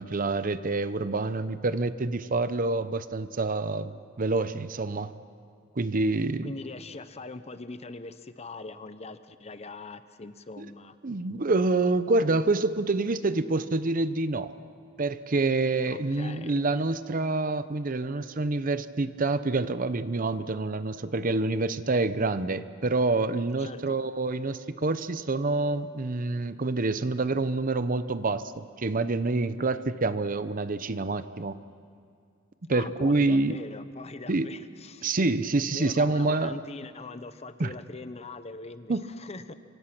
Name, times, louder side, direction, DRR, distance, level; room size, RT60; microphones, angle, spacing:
voice 1, 0.0-5.1 5.8-6.5 10.6-10.7 11.0-14.5 15.0-31.6 32.7-33.6 34.3-34.5 35.0-36.6 37.6-37.7 38.9-39.1, right 3 dB, 45° right, 13 dB, 0.8 m, -27 dB
voice 2, 6.4-11.0 15.9-16.7 23.6-24.0 32.7-35.1 35.7-39.5, left 3 dB, 30° left, 11 dB, 0.9 m, -42 dB
26.5 x 24.5 x 6.0 m, 2.3 s
head